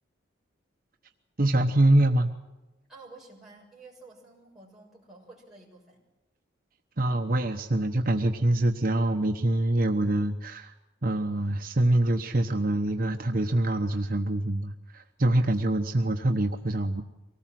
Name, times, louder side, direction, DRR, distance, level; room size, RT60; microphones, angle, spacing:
voice 1, 1.4-2.3 7.0-10.7 11.0-17.0, right 1 dB, 50° right, 4 dB, 1.0 m, -25 dB
voice 2, 2.9-6.0, right 3 dB, ahead, -4 dB, 6.8 m, -51 dB
24.5 x 18.5 x 7.6 m, 1.0 s
head